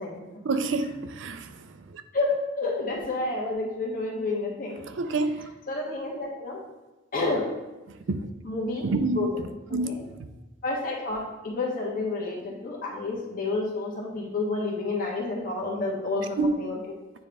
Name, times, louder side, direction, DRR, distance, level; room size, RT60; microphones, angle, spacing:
voice 1, 0.4-2.0 4.9-5.5 7.9-8.3 8.8-10.2 16.4-16.5, right 3 dB, 85° right, 9 dB, 0.5 m, -29 dB
voice 2, 2.1-4.8 5.7-6.6 7.1-7.5 8.4-9.5 9.8-10.0 10.6-16.8, left 3 dB, 50° left, -4 dB, 1.6 m, -30 dB
9.1 x 3.5 x 3.5 m, 1.1 s
head